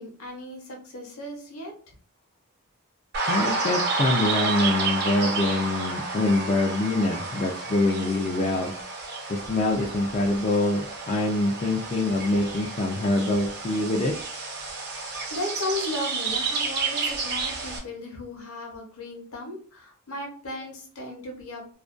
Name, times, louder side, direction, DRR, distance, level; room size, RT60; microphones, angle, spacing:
voice 1, 0.0-1.7 14.9-21.8, left 1 dB, 65° left, 1 dB, 0.8 m, -36 dB
sound 1, 3.1-17.8, right 3 dB, 50° right, 0.6 m, -30 dB
voice 2, 3.3-8.7 9.3-14.1, left 2 dB, 30° left, -2 dB, 0.3 m, -25 dB
2.4 x 2.1 x 2.4 m, 0.43 s
head